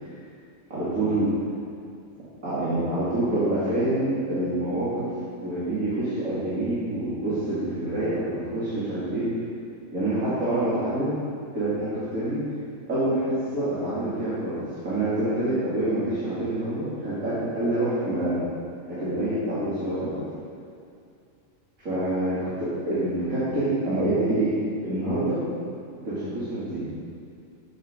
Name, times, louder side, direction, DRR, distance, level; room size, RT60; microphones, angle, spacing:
voice 1, 0.7-1.3 2.4-5.1 5.4-9.3 9.9-11.1 11.5-12.4 12.9-14.6 14.8-18.4 18.9-20.2 21.8-25.4 26.0-26.9, right 1 dB, 85° right, -12 dB, 3.0 m, -26 dB
13.0 x 7.3 x 5.1 m, 2.4 s
omnidirectional pair, 1.4 m